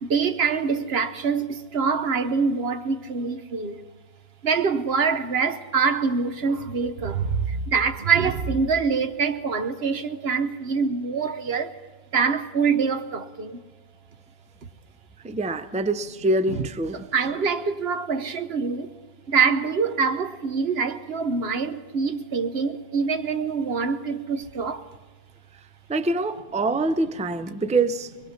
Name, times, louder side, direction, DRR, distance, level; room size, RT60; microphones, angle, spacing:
voice 1, 0.0-3.8 4.4-11.8 12.1-13.6 16.5-16.7 17.1-19.0 19.3-24.9, right 5 dB, 80° right, 1.2 m, -25 dB
voice 2, 15.2-17.1 25.9-28.1, right 2 dB, 10° right, 0.5 m, -25 dB
23.5 x 21.5 x 5.8 m
omnidirectional pair, 1.0 m